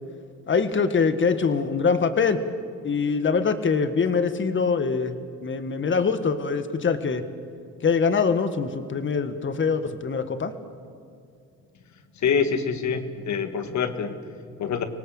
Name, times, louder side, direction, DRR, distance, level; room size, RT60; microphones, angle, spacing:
voice 1, 0.5-2.4 2.8-7.2 7.8-10.5, left 5 dB, 40° left, 10 dB, 1.7 m, -23 dB
voice 2, 12.2-14.8, left 6 dB, 65° left, 8 dB, 1.9 m, -26 dB
25.5 x 18.0 x 7.8 m, 2.3 s
cardioid pair, 90°, 30 cm